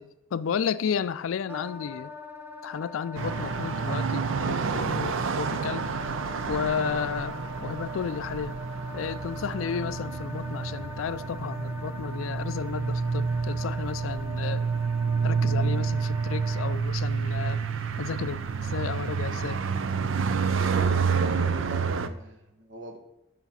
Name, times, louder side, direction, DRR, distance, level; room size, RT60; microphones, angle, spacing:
voice 1, 0.0-2.1 2.6-5.9 6.5-8.6 8.9-14.7 15.2-17.6 18.0-19.6, left 7 dB, 90° left, 0.4 m, -32 dB
Wind instrument woodwind instrument, 1.5-16.8, left 1 dB, 10° right, 0.7 m, -42 dB
sound 1, 3.1-22.1, right 5 dB, 80° right, 0.5 m, -29 dB
voice 2, 20.9-23.0, equal, 65° right, 1.4 m, -41 dB
7.1 x 5.7 x 5.7 m
head